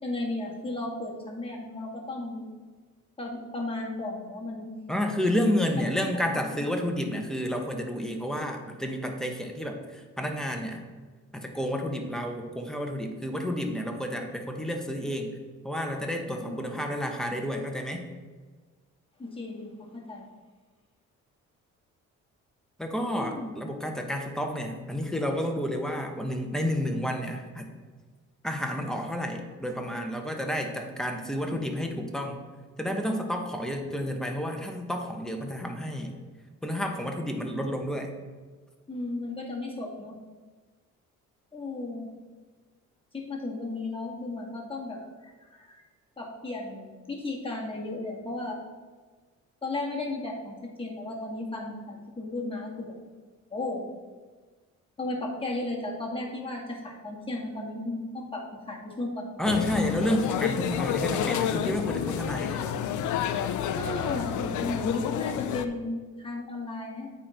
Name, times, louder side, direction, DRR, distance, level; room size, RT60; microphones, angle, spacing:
voice 1, 0.0-2.5 3.2-4.7 6.3-6.4 16.3-16.7 19.2-20.3 23.1-23.6 38.9-40.1 41.5-42.1 43.1-45.3 45.6-45.8 46.2-48.6 49.6-53.0 53.5-53.9 55.0-59.4 63.7-67.2, left 2 dB, 20° left, -3 dB, 2.2 m, -35 dB
voice 2, 4.9-10.8 11.3-15.4 15.6-18.1 22.8-27.7 28.4-32.4 32.8-36.2 36.6-38.1 59.4-62.8, equal, ahead, 3 dB, 1.2 m, -30 dB
sound 1, 59.4-65.7, left 9 dB, 75° left, 0.6 m, -29 dB
8.3 x 4.5 x 5.3 m, 1.4 s
cardioid pair, 90°, 30 cm